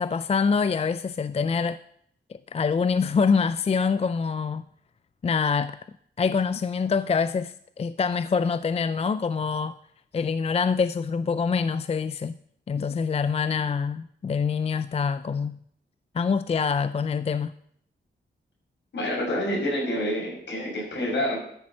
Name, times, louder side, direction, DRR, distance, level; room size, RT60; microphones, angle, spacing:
voice 1, 0.0-1.8 2.3-4.6 5.2-5.8 6.2-9.7 10.1-12.3 12.7-15.6 16.1-17.5, left 5 dB, 30° left, 0.3 m, -25 dB
voice 2, 18.9-21.4, equal, 70° left, 6.4 m, -27 dB
13.0 x 7.3 x 6.3 m
wide cardioid pair, 130°, 20 cm